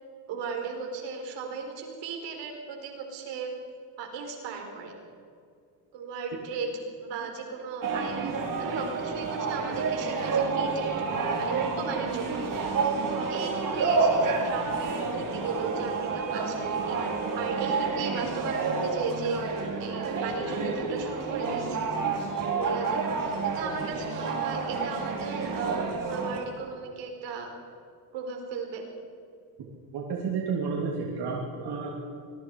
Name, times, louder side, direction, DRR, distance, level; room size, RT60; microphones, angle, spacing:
voice 1, 0.3-3.5 4.0-4.9 5.9-6.7 7.0-10.9 11.4-12.5 13.1-17.0 17.3-21.9 22.5-23.1 23.4-27.5 28.1-28.8, right 5 dB, 80° right, 3 dB, 4.7 m, -36 dB
sound 1, 7.8-26.4, right 4 dB, 50° right, 4.5 m, -29 dB
voice 2, 29.9-32.0, right 5 dB, 65° right, -2 dB, 3.2 m, -31 dB
25.5 x 21.5 x 4.9 m, 2.4 s
cardioid pair, 115°, 42 cm